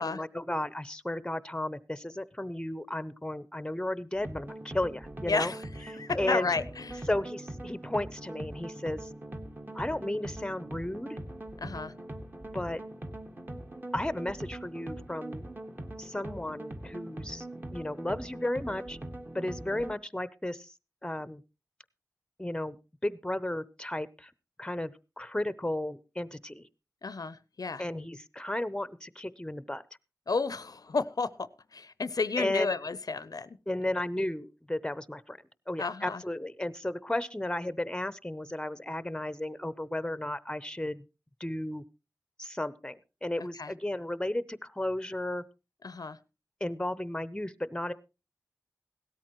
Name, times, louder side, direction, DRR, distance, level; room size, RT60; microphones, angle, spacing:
voice 1, 0.0-5.5 6.1-6.5 7.1-9.1 9.7-11.2 12.5-12.8 13.9-15.4 16.0-17.5 17.7-19.0 19.3-20.7 21.0-21.4 22.4-22.8 23.0-24.3 24.6-26.7 27.8-29.8 32.4-32.7 33.7-35.4 35.7-41.0 41.4-41.8 42.4-45.4 46.6-47.9, left 1 dB, 10° left, 0.7 m, -34 dB
sound 1, 4.2-20.0, right 1 dB, 30° right, 1.5 m, -42 dB
voice 2, 5.3-7.1 11.6-11.9 27.0-27.8 30.3-33.6 35.8-36.2 43.6-43.7 45.8-46.2, left 4 dB, 70° left, 0.6 m, -32 dB
17.0 x 13.0 x 3.0 m
wide cardioid pair, 60°, 7 cm